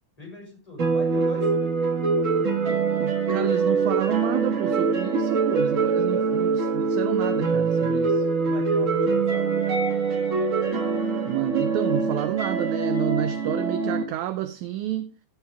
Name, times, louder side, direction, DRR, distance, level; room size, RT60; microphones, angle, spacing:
voice 1, 0.2-1.5 8.4-9.5, left 2 dB, 10° left, 6.7 m, -40 dB
sound 1, 0.8-14.0, right 4 dB, 60° right, 0.8 m, -24 dB
voice 2, 2.6-8.3 11.3-15.1, right 12 dB, 75° right, 1.7 m, -29 dB
15.0 x 8.3 x 3.5 m
omnidirectional pair, 3.9 m